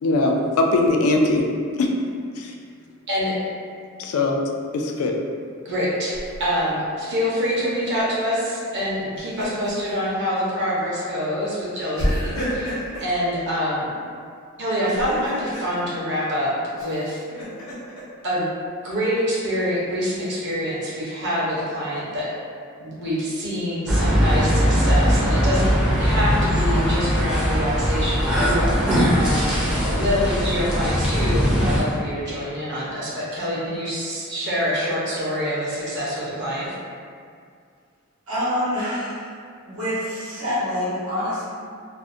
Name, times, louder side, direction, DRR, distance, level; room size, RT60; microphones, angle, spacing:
voice 1, 0.0-1.5 1.8-1.9 2.4-2.5 4.0-4.4 4.7-5.1, left 2 dB, 85° left, 3 dB, 0.3 m, -20 dB
voice 2, 5.6-6.1 6.4-13.9 14.6-16.5 16.8-17.2 18.2-18.5 18.8-22.3 22.8-25.7 26.0-36.7, equal, 55° right, -7 dB, 0.6 m, -26 dB
Laughter, 6.1-6.7 9.0-9.9 10.3-10.5 12.0-13.1 14.7-15.7 16.8-18.0, equal, 70° left, 0.7 m, -30 dB
sound 1, 23.9-31.8, equal, 5° right, 0.4 m, -20 dB
voice 3, 38.3-39.3 39.7-41.4, left 1 dB, 90° right, -10 dB, 0.9 m, -26 dB
2.4 x 2.0 x 2.5 m, 2.2 s
head